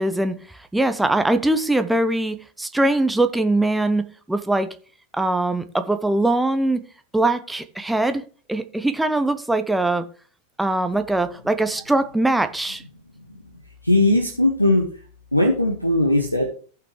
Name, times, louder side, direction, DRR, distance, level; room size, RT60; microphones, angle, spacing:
voice 1, 0.0-4.7 5.1-6.8 7.1-10.0 10.6-12.8, right 2 dB, 5° right, 0.7 m, -22 dB
voice 2, 13.8-14.9 15.3-16.5, left 1 dB, 85° left, 1.2 m, -18 dB
16.0 x 6.0 x 3.1 m
figure-of-eight pair, 90°, 0 cm